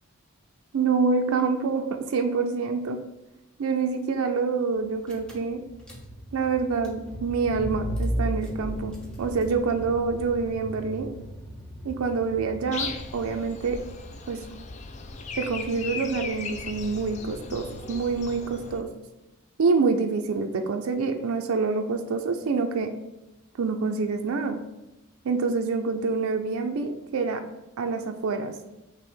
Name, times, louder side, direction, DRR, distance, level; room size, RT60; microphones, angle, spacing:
voice 1, 0.7-3.0 3.6-5.6 6.3-11.1 11.8-13.8 14.3-14.4 15.3-18.9 19.6-22.9 23.6-24.6 25.2-27.4 27.8-28.5, right 4 dB, 75° right, 5 dB, 0.4 m, -26 dB
Car / Engine, 4.8-4.9 5.1-13.4, right 1 dB, 5° left, 0.8 m, -35 dB
Breathing, 12.7-18.8, left 4 dB, 30° left, 0.3 m, -37 dB
5.9 x 2.1 x 4.4 m, 0.95 s
head